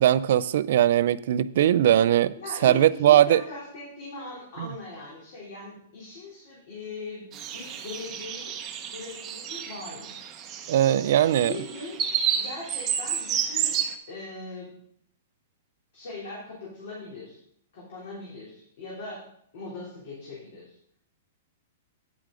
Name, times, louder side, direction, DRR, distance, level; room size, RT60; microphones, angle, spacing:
voice 1, 0.0-2.3 2.6-3.4 4.6-4.7 10.7-11.5, right 11 dB, 55° right, 16 dB, 0.4 m, -20 dB
voice 2, 2.4-10.1 10.9-12.0 12.3-13.7 14.1-14.7 15.9-17.4 17.7-19.2 19.5-20.8, left 2 dB, 50° left, -5 dB, 3.1 m, -40 dB
sound 1, 7.3-13.9, right 8 dB, 20° right, 0.7 m, -31 dB
9.3 x 8.3 x 3.8 m, 0.69 s
hypercardioid pair, 165°, 0 cm